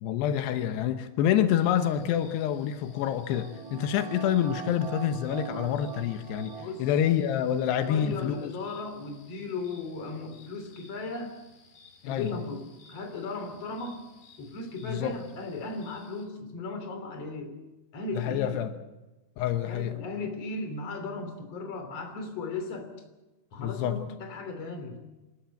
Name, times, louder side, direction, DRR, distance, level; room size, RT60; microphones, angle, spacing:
voice 1, 0.0-8.5 12.0-12.3 14.8-15.2 18.2-18.7 19.4-20.0 23.6-24.0, left 10 dB, 85° left, 9 dB, 3.1 m, -27 dB
sound 1, 1.5-16.3, left 4 dB, 55° left, 4.9 m, -58 dB
sound 2, 2.8-7.6 7.9-8.0, right 6 dB, 70° right, 3.5 m, -42 dB
voice 2, 6.6-6.9 7.7-11.4 12.0-14.0 14.4-17.6 17.9-18.6 19.7-22.9 23.5-25.0, left 3 dB, 40° left, 6 dB, 3.9 m, -36 dB
27.5 x 13.0 x 9.1 m, 1.1 s
omnidirectional pair, 4.7 m